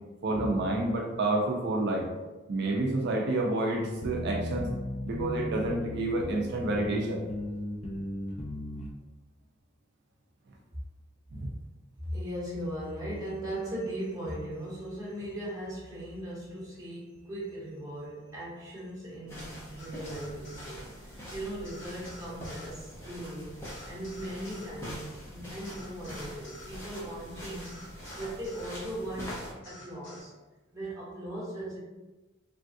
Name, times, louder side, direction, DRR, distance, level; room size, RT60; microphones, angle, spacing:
voice 1, 0.2-2.1 2.5-4.7 5.0-7.2 11.3-11.5, right 2 dB, 55° right, -1 dB, 0.4 m, -29 dB
sound 1, 3.7-8.9, left 1 dB, 30° left, 0.4 m, -36 dB
voice 2, 12.0-27.8 28.1-30.3 30.7-31.8, right 1 dB, 20° right, -8 dB, 1.1 m, -38 dB
sound 2, 19.3-29.5, equal, 15° left, 0.8 m, -44 dB
sound 3, 19.8-20.7 21.6-22.7 23.6-24.7 25.6-26.7 27.6-28.7 29.6-30.2, left 1 dB, 60° left, 0.8 m, -50 dB
3.3 x 2.3 x 2.6 m, 1.1 s
head